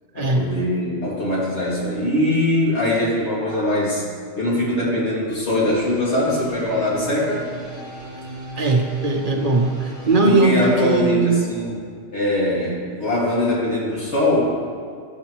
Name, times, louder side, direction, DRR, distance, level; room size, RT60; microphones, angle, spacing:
voice 1, 0.1-4.0 4.4-7.4 10.2-11.8 12.1-14.5, left 1 dB, 80° left, -7 dB, 2.4 m, -22 dB
sound 1, 5.7-11.0, right 2 dB, 40° left, 1.8 m, -36 dB
voice 2, 8.6-11.4, right 3 dB, 50° right, 2 dB, 0.9 m, -19 dB
11.0 x 7.4 x 3.0 m, 2.2 s
omnidirectional pair, 1.2 m